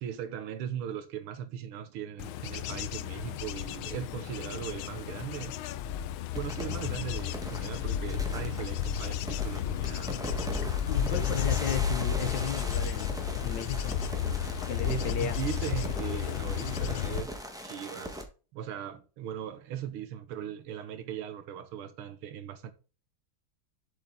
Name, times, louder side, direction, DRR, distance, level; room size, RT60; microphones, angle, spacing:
voice 1, 0.0-5.6 6.4-10.2 14.9-18.3 18.5-22.7, right 9 dB, 85° right, 1.9 m, -39 dB
Bird / Insect / Wind, 2.2-17.2, left 9 dB, 80° left, 1.4 m, -32 dB
sound 1, 6.3-18.2, equal, 5° right, 0.8 m, -40 dB
voice 2, 10.9-14.0 14.7-15.4, left 8 dB, 65° left, 1.5 m, -35 dB
7.7 x 5.6 x 3.7 m
omnidirectional pair, 2.3 m